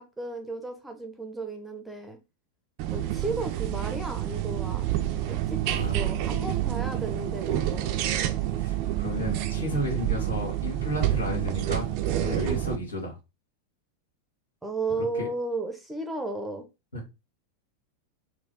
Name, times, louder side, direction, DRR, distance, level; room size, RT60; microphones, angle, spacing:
voice 1, 0.0-2.2 2.9-4.9 5.3-7.9 14.6-16.6, right 2 dB, 5° right, 0.8 m, -34 dB
sound 1, 2.8-12.8, right 13 dB, 45° right, 0.5 m, -28 dB
voice 2, 5.6-6.1 8.6-11.9 12.2-13.2 15.2-15.3 16.9-17.1, left 1 dB, 75° left, 1.9 m, -32 dB
4.3 x 2.4 x 3.7 m
figure-of-eight pair, 90°, 0 cm